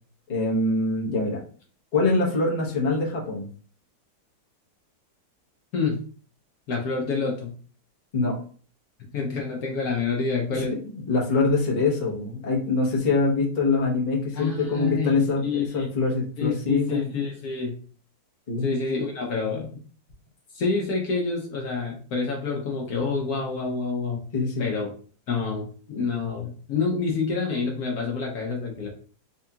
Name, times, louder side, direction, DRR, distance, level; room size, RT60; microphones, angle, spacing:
voice 1, 0.3-1.4 1.9-3.5 8.1-8.4 10.5-10.6 11.1-17.1 18.5-18.7 24.3-24.7, left 3 dB, 40° left, -3 dB, 0.7 m, -24 dB
voice 2, 6.7-7.5 9.1-10.7 14.3-15.9 16.4-17.8 18.6-19.7 20.5-24.2 24.6-24.9 25.3-28.9, left 4 dB, 60° left, 0 dB, 1.1 m, -28 dB
4.4 x 2.4 x 2.7 m, 0.43 s
omnidirectional pair, 2.1 m